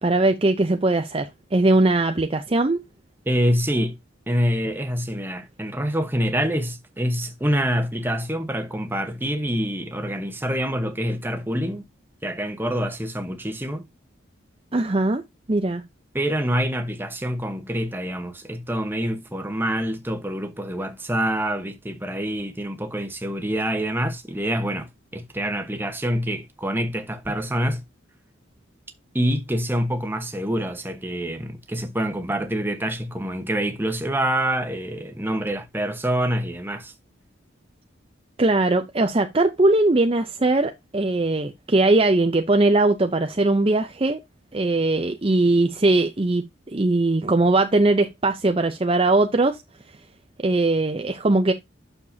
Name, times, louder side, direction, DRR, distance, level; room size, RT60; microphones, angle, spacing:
voice 1, 0.0-2.8 14.7-15.2 15.5-15.8 38.4-44.2 44.5-49.6 50.4-51.5, right 2 dB, 30° right, 0.6 m, -20 dB
voice 2, 3.3-4.0 4.3-11.9 12.2-13.9 16.1-27.8 29.1-36.9, equal, 10° right, 1.0 m, -26 dB
8.5 x 6.7 x 2.7 m
head